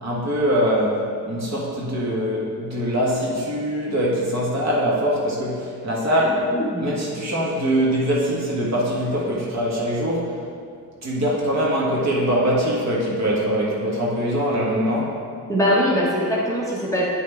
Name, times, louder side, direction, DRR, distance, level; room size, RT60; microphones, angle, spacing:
voice 1, 0.0-6.5 6.8-10.3 11.0-15.2, equal, 50° right, -5 dB, 1.5 m, -23 dB
voice 2, 6.5-6.8 15.5-17.1, equal, 10° left, -6 dB, 1.0 m, -21 dB
9.1 x 5.4 x 3.5 m, 2.2 s
wide cardioid pair, 165°, 34 cm